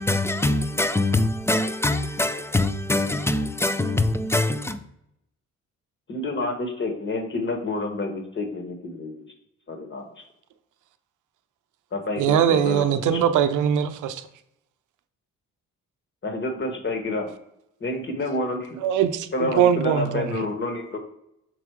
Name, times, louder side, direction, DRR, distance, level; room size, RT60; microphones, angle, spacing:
voice 1, 0.0-4.8, left 2 dB, 10° left, 0.5 m, -23 dB
voice 2, 6.1-9.3 9.7-10.2 11.9-13.4 16.2-17.3 17.8-18.8 19.3-21.0, left 2 dB, 40° left, 1.4 m, -29 dB
voice 3, 12.2-14.2 18.8-20.3, right 9 dB, 80° right, 0.7 m, -21 dB
6.2 x 3.8 x 4.7 m
cardioid pair, 90°, 30 cm